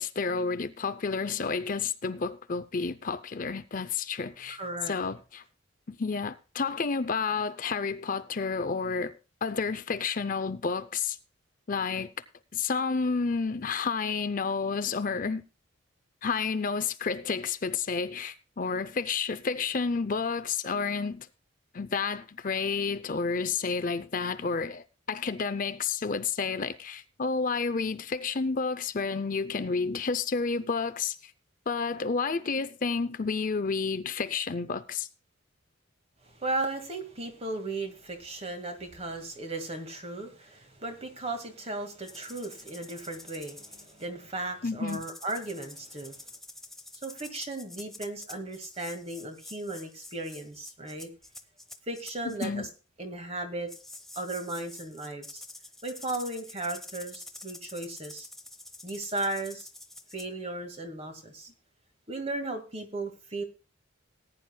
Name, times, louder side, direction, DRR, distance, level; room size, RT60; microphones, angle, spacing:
voice 1, 0.0-4.6 4.9-5.4 5.9-9.1 9.4-11.2 11.7-12.1 12.5-15.4 16.2-21.3 21.7-31.3 31.7-35.1 44.6-45.0 52.4-52.7, left 5 dB, 40° left, 0.5 m, -30 dB
voice 2, 4.5-4.9 36.2-46.2 47.0-51.1 51.9-52.7 53.0-53.7 54.2-55.4 55.8-58.3 58.8-59.7 60.1-61.5 62.1-63.4, right 2 dB, 30° right, 1.9 m, -36 dB
sound 1, 42.0-44.1 44.9-52.5 53.7-60.3, left 2 dB, ahead, 0.8 m, -47 dB
19.0 x 9.8 x 2.3 m
head